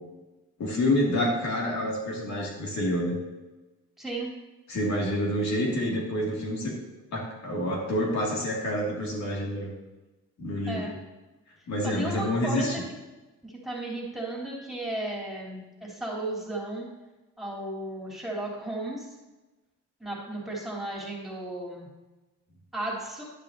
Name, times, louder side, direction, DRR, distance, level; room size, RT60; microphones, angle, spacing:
voice 1, 0.6-3.2 4.7-6.7 7.1-9.7 10.4-10.9 11.7-12.7, left 1 dB, 65° left, -2 dB, 2.4 m, -28 dB
voice 2, 4.0-4.3 10.7-10.9 11.9-12.7 13.4-16.9 17.4-19.1 20.0-21.9 22.7-23.2, right 1 dB, ahead, -4 dB, 3.4 m, -34 dB
10.5 x 10.5 x 2.8 m, 1.1 s
cardioid pair, 90°, 30 cm